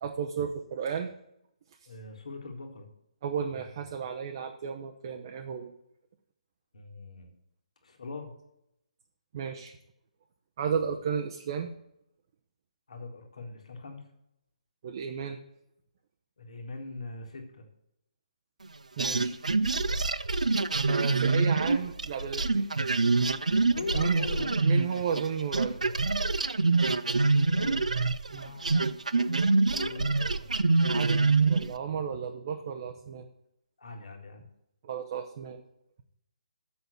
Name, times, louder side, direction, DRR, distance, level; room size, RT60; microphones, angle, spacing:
voice 1, 0.0-1.1 3.2-5.7 9.3-9.8 10.6-11.7 14.8-15.4 19.0-19.4 20.9-22.6 23.9-24.2 24.6-25.8 28.3-28.5 30.9-33.3 34.8-35.6, right 7 dB, 40° right, 5 dB, 0.7 m, -33 dB
voice 2, 1.9-2.9 3.5-3.6 6.7-7.3 7.8-8.3 12.9-14.1 16.4-17.7 23.7-24.8 27.1-27.9 28.4-28.9 29.7-30.5 33.8-34.5, left 3 dB, 60° left, 3 dB, 1.9 m, -41 dB
sound 1, 19.0-25.3 25.5-31.8, right 3 dB, 70° right, 0.5 m, -25 dB
7.0 x 6.4 x 7.8 m, 0.80 s
figure-of-eight pair, 140°, 4 cm